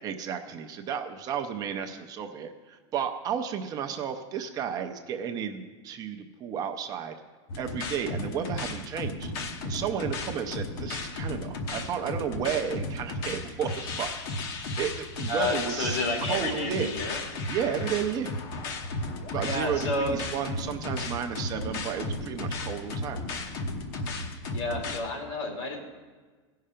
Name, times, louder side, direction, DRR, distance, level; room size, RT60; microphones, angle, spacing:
voice 1, 0.0-7.1 7.6-9.3 9.6-16.9 17.5-18.3 19.3-23.2, right 8 dB, 25° right, 6 dB, 0.6 m, -33 dB
sound 1, 7.5-25.0, left 2 dB, 55° left, 1.0 m, -34 dB
voice 2, 15.3-17.2 19.4-20.1 24.5-25.8, left 2 dB, 80° left, 1 dB, 2.7 m, -30 dB
16.5 x 5.6 x 5.0 m, 1.4 s
supercardioid pair, 155°, 15 cm